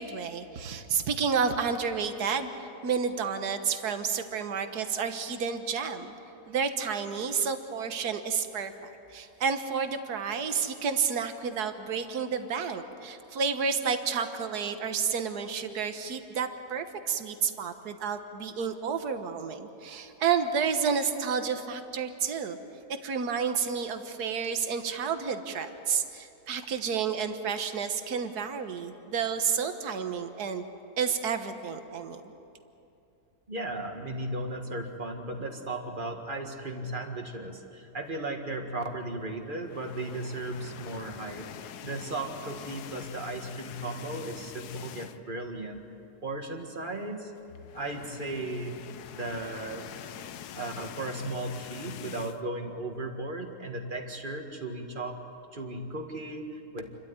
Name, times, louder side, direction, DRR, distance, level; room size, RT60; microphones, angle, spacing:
voice 1, 0.0-6.1 6.5-8.7 9.1-22.6 23.0-30.6 31.0-32.2, right 6 dB, 70° right, 8 dB, 1.7 m, -30 dB
voice 2, 33.5-41.5 41.8-45.8 46.2-47.3 47.7-48.8 49.1-49.9 50.5-55.2 55.5-56.9, right 2 dB, 30° right, 4 dB, 1.9 m, -36 dB
sound 1, 39.6-45.4 45.8-46.0 46.2-46.3 47.4-52.4, left 10 dB, 75° left, 1.2 m, -45 dB
28.5 x 13.0 x 9.6 m, 2.7 s
omnidirectional pair, 1.8 m